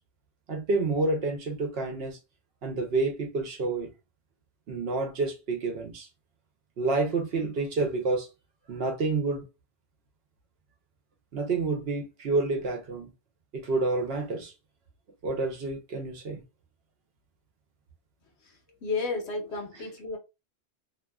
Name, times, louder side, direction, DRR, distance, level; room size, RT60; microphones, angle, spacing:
voice 1, 0.5-2.2 2.6-3.9 4.7-6.1 6.8-8.3 8.7-9.4 11.3-13.1 13.5-14.5 15.2-16.4, right 3 dB, 65° right, 0.9 m, -29 dB
voice 2, 18.4-20.2, left 3 dB, 75° left, 1.0 m, -33 dB
2.6 x 2.3 x 2.2 m
omnidirectional pair, 1.2 m